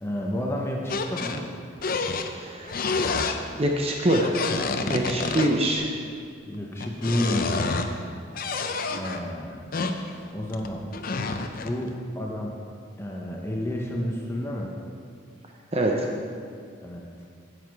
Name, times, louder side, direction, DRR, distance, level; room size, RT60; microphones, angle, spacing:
voice 1, 0.0-1.5 4.8-5.0 6.4-7.8 8.9-9.6 10.3-10.9 11.6-12.5 13.0-14.7 16.8-17.1, left 1 dB, 10° left, -1 dB, 0.8 m, -30 dB
sound 1, 0.9-1.4 1.8-2.3 2.7-3.4 4.1-5.9 6.5-7.9 8.3-9.2 9.7-11.9, left 4 dB, 45° left, 0.5 m, -28 dB
voice 2, 2.3-2.8 3.5-4.4 4.9-5.9 15.7-16.1, right 1 dB, 30° right, 1 dB, 0.7 m, -24 dB
9.9 x 8.0 x 4.7 m, 2.2 s
head